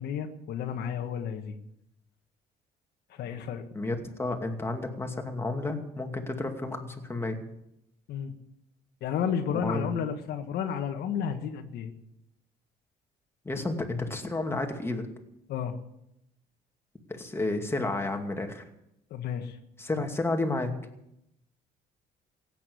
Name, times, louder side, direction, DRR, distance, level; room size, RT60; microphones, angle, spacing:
voice 1, 0.0-1.5 3.1-3.6 8.1-8.3 9.0-11.9 15.5-15.8 19.1-19.6, left 8 dB, 70° left, 6 dB, 1.6 m, -32 dB
voice 2, 3.7-7.4 9.6-9.9 13.4-15.1 17.1-18.6 19.8-20.7, left 2 dB, 15° left, 4 dB, 2.4 m, -31 dB
16.5 x 9.2 x 7.9 m, 0.82 s
cardioid pair, 110°, 17 cm